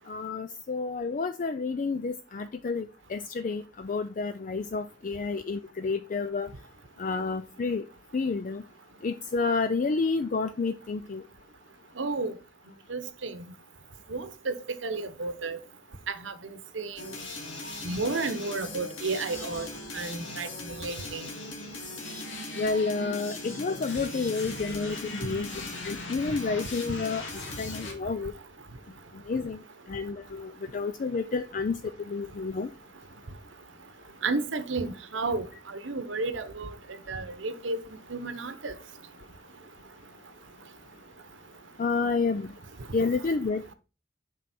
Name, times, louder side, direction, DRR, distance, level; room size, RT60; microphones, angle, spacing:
voice 1, 0.1-6.5 7.0-7.8 8.1-8.6 9.0-11.2 22.5-25.5 25.8-27.2 27.6-28.3 29.3-29.6 29.9-31.8 32.1-32.7 41.8-42.5 42.9-43.6, left 4 dB, 45° left, 0.4 m, -30 dB
voice 2, 12.0-12.3 12.9-13.4 14.1-14.5 14.8-15.6 16.1-16.3 16.8-17.1 17.8-19.7 19.9-21.2 34.2-35.4 35.8-36.7 37.1-37.8 38.1-38.7, right 3 dB, 85° right, 0.9 m, -32 dB
sound 1, 17.0-27.9, left 2 dB, 85° left, 2.2 m, -39 dB
7.8 x 5.3 x 4.2 m
head